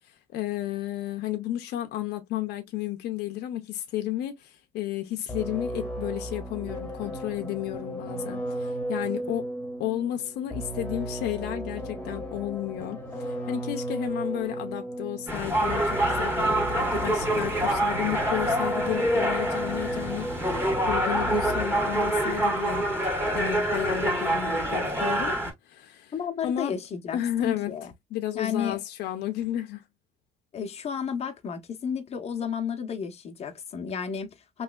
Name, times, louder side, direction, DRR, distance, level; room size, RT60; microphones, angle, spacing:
voice 1, 0.3-9.5 9.8-13.0 13.3-20.3 20.6-25.4 25.7-26.1 26.4-26.7 27.1-29.8, left 13 dB, 75° left, 0.6 m, -32 dB
sound 1, 5.3-21.9, right 1 dB, 10° left, 1.2 m, -35 dB
sound 2, 15.3-25.5, right 1 dB, 15° right, 1.4 m, -26 dB
voice 2, 26.1-27.9 28.3-28.8 30.5-34.6, left 7 dB, 40° left, 0.8 m, -32 dB
3.2 x 3.0 x 2.3 m
cardioid pair, 110°, 17 cm